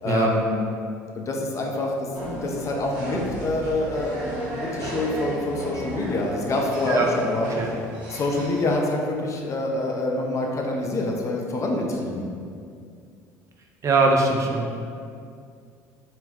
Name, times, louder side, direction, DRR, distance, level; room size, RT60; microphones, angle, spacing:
voice 1, 0.0-0.5 1.2-1.9 2.3-7.8 8.1-12.3, left 2 dB, 40° left, 0 dB, 0.4 m, -26 dB
sound 1, 2.1-8.8, right 1 dB, 70° right, 0.9 m, -34 dB
voice 2, 13.8-14.8, right 3 dB, 40° right, 1 dB, 0.4 m, -21 dB
2.3 x 2.2 x 3.3 m, 2.3 s
hypercardioid pair, 70°, 8 cm